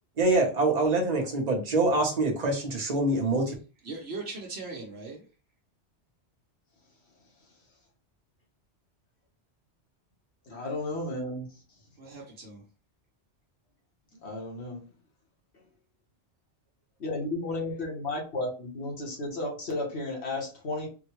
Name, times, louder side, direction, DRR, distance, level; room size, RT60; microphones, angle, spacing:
voice 1, 0.2-3.5, right 2 dB, 40° right, 1 dB, 1.0 m, -25 dB
voice 2, 3.8-5.2 12.0-12.6, right 3 dB, 65° right, 0 dB, 1.0 m, -39 dB
voice 3, 10.5-11.5 14.2-14.8 17.0-20.9, left 2 dB, 65° left, -1 dB, 1.4 m, -33 dB
3.7 x 2.2 x 3.0 m, 0.35 s
omnidirectional pair, 1.2 m